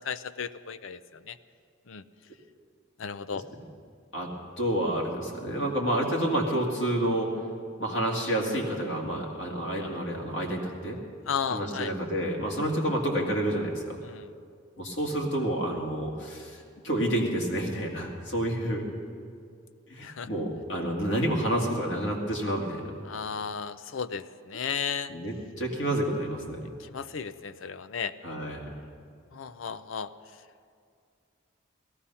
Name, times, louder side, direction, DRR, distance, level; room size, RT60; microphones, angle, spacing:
voice 1, 0.0-1.4 1.9-2.0 3.0-3.4 11.3-11.9 14.0-14.3 20.0-20.3 23.0-25.1 26.8-28.1 29.3-30.1, left 6 dB, 75° left, 14 dB, 0.5 m, -34 dB
voice 2, 4.6-7.3 7.8-11.0 11.5-14.0 14.8-16.6 16.8-18.8 19.9-22.8 25.1-26.7 28.2-28.6, right 1 dB, 60° left, -1 dB, 2.4 m, -29 dB
17.0 x 14.5 x 5.7 m, 2.3 s
head